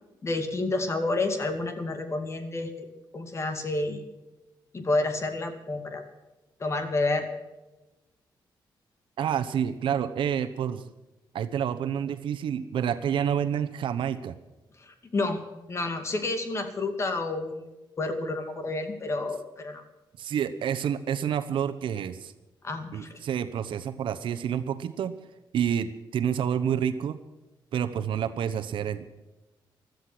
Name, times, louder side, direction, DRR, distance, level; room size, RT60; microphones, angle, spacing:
voice 1, 0.2-2.9 3.1-4.0 4.7-6.0 6.6-7.3 14.8-15.4 15.7-19.8 22.6-23.2, left 2 dB, 35° left, 7 dB, 2.4 m, -30 dB
voice 2, 9.2-10.8 11.3-14.3 20.2-22.3 22.9-25.1 25.5-27.2 27.7-29.0, right 8 dB, 80° right, 10 dB, 1.0 m, -28 dB
16.0 x 13.5 x 6.1 m, 1.0 s
cardioid pair, 135°, 9 cm